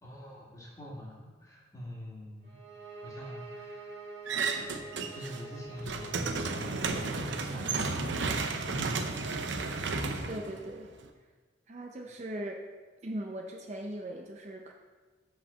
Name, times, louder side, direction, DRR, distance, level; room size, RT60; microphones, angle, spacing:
voice 1, 0.0-2.6 3.0-4.3 5.1-9.3, left 1 dB, 20° left, -5 dB, 1.9 m, -45 dB
sound 1, 2.4-7.3, right 3 dB, 70° right, 2.0 m, -46 dB
sound 2, 4.3-5.4 5.7-11.1, right 4 dB, 90° right, 0.7 m, -33 dB
voice 2, 10.3-10.9 11.7-12.6 13.0-14.7, right 1 dB, 40° right, 1 dB, 0.6 m, -39 dB
5.7 x 5.4 x 6.7 m, 1.4 s
head